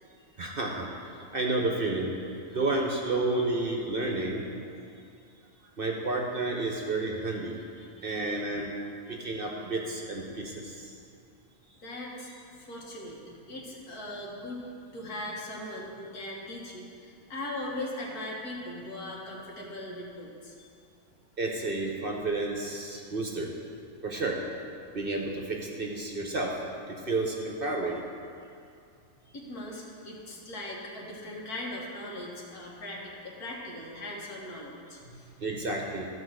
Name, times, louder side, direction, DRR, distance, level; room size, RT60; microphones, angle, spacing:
voice 1, 0.4-2.1 2.5-4.5 5.8-7.6 8.0-8.7 9.1-10.9 21.4-23.5 24.0-24.4 24.9-26.5 26.9-28.0 35.0-35.1 35.4-36.1, right 2 dB, 45° right, 0 dB, 1.0 m, -31 dB
voice 2, 7.8-8.4 9.1-9.5 11.6-20.7 27.7-27.8 29.3-35.4, left 1 dB, 80° left, -3 dB, 2.1 m, -40 dB
13.5 x 4.7 x 6.4 m, 2.5 s
omnidirectional pair, 1.6 m